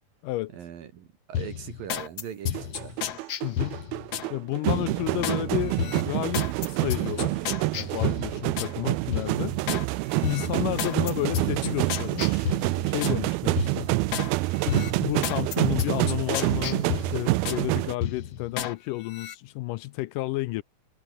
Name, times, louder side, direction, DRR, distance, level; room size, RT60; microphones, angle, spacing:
voice 1, 0.5-3.0, right 9 dB, 70° right, 3.8 m, -40 dB
sound 1, 1.3-4.3 4.7-5.4 5.8-8.7 9.1-9.9 10.2-13.2 13.6-14.3 14.7-17.6 18.0-18.7 19.1-19.4, left 9 dB, 55° left, 2.1 m, -32 dB
sound 2, 2.5-17.9, right 21 dB, 85° right, 2.5 m, -27 dB
voice 2, 3.4-3.8 4.3-7.5 7.7-9.6 10.2-12.5 12.9-13.9 14.7-20.6, left 18 dB, 80° left, 2.0 m, -31 dB
omnidirectional pair, 4.3 m